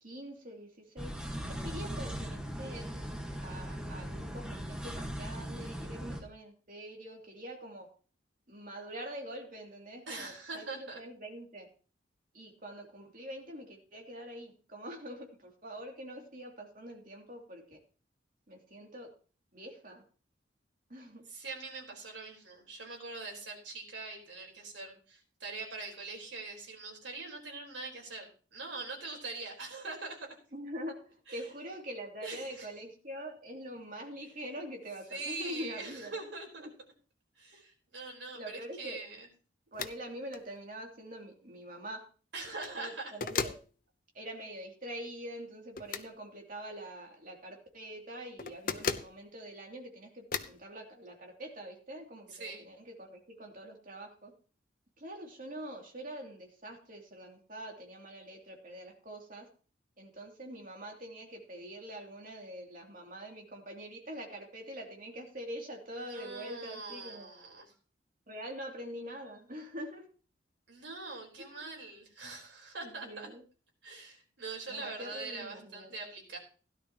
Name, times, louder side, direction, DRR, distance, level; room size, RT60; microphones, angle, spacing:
voice 1, 0.0-1.1 1.4-2.9 3.4-7.9 8.5-11.7 12.3-17.8 18.5-19.1 19.5-20.0 20.9-21.2 30.5-31.0 31.3-36.2 36.6-36.7 37.5-37.6 38.3-39.0 39.7-42.0 42.8-43.5 44.1-54.3 55.0-59.5 60.0-67.3 68.3-70.0 71.4-71.8 72.8-73.4 74.7-75.9, equal, 45° right, 1 dB, 2.9 m, -44 dB
sound 1, 1.0-6.2, equal, 5° right, 1.5 m, -39 dB
voice 2, 10.1-11.0 21.3-30.3 31.3-31.5 32.2-32.7 35.1-36.7 37.4-39.3 42.3-43.1 52.3-52.6 65.9-67.7 70.7-73.3 73.8-76.4, right 3 dB, 75° right, 0 dB, 4.3 m, -43 dB
sound 2, 39.7-40.0 40.3-40.4 42.4-42.8 43.2-43.6 45.8-46.1 48.4-49.1 50.3-50.6, left 5 dB, 45° left, 0.8 m, -35 dB
16.5 x 11.5 x 3.0 m, 0.38 s
head